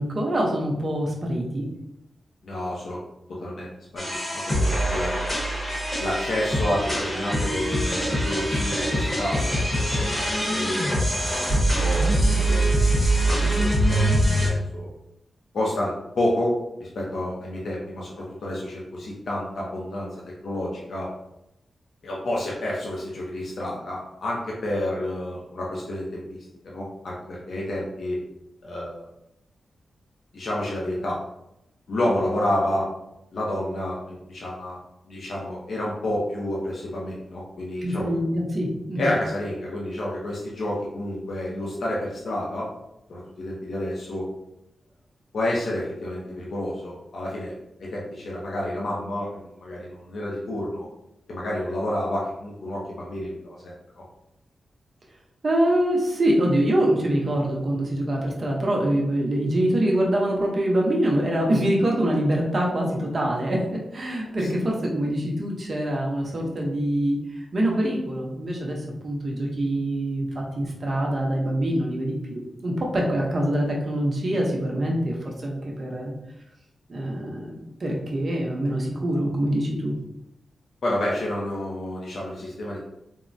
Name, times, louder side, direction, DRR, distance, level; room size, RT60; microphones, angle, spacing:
voice 1, 0.0-1.6 37.8-39.1 55.4-63.6 63.9-67.2 67.5-68.8 69.0-76.1 76.9-79.9, right 1 dB, 40° right, -1 dB, 0.7 m, -24 dB
voice 2, 2.4-3.0 3.4-5.1 6.0-11.4 11.7-14.9 15.5-20.1 20.4-21.1 22.0-26.4 26.6-28.2 28.6-29.0 30.3-31.2 31.9-32.9 33.3-34.8 35.1-38.1 39.0-42.7 43.1-44.3 45.3-47.5 47.8-50.9 51.3-53.7 64.4-64.5 80.8-82.8, left 1 dB, 70° left, -4 dB, 0.6 m, -29 dB
sound 1, 4.0-14.5, right 1 dB, 25° left, 0.9 m, -23 dB
3.5 x 2.0 x 2.5 m, 0.85 s
wide cardioid pair, 125°, 0 cm